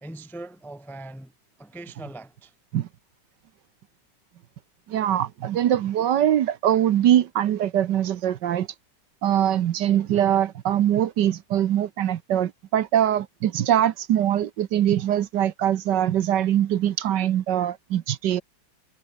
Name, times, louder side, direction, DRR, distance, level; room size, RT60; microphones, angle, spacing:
voice 1, 0.0-1.3 1.6-2.5, right 2 dB, ahead, 0.6 m, -40 dB
voice 2, 4.9-8.7 9.2-18.4, right 11 dB, 65° right, 1.4 m, -22 dB
omnidirectional pair, 2.2 m